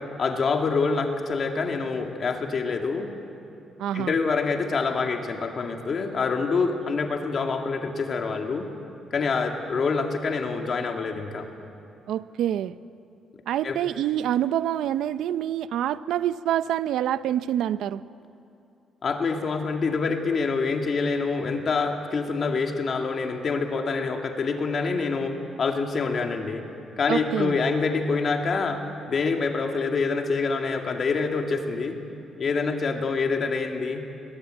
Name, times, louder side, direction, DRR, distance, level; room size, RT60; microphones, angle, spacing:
voice 1, 0.2-3.1 3.9-8.7 9.1-11.5 13.6-13.8 19.0-26.6 27.0-32.0 32.4-34.1, left 4 dB, 40° left, 3 dB, 2.2 m, -26 dB
voice 2, 3.8-4.1 12.1-12.7 13.5-18.0 27.1-27.6, right 11 dB, 80° right, 15 dB, 0.5 m, -26 dB
22.5 x 20.5 x 9.0 m, 2.7 s
cardioid pair, 150°, 0 cm